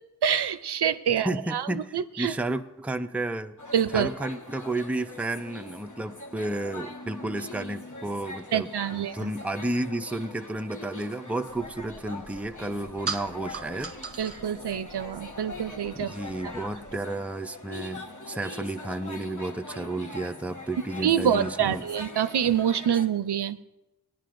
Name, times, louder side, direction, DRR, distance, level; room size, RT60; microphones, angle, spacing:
voice 1, 0.2-2.3 3.7-4.1 8.5-9.3 14.2-16.2 16.4-16.5 21.0-23.6, right 9 dB, 75° right, 13 dB, 0.5 m, -26 dB
voice 2, 1.2-3.6 3.9-13.9 16.0-21.8, right 2 dB, 5° right, 7 dB, 0.4 m, -32 dB
sound 1, 3.6-23.1, left 2 dB, 45° left, 1.2 m, -42 dB
sound 2, 11.5-17.0, right 4 dB, 35° right, 0.8 m, -41 dB
18.5 x 10.0 x 2.5 m, 0.96 s
wide cardioid pair, 65°, 40 cm